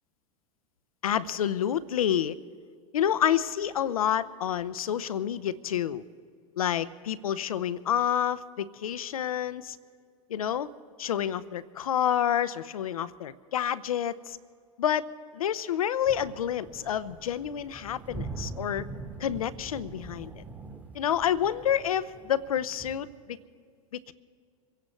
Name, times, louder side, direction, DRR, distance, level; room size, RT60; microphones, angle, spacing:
voice 1, 1.0-2.4 2.9-6.0 6.6-9.8 10.3-10.7 11.0-14.4 14.8-15.1 15.3-18.9 19.2-20.3 20.9-23.4 23.9-24.1, left 10 dB, 80° left, 16 dB, 0.6 m, -28 dB
sound 1, 16.0-23.1, right 3 dB, 10° right, 1.5 m, -43 dB
26.5 x 16.5 x 3.1 m, 2.2 s
hypercardioid pair, 90°, 18 cm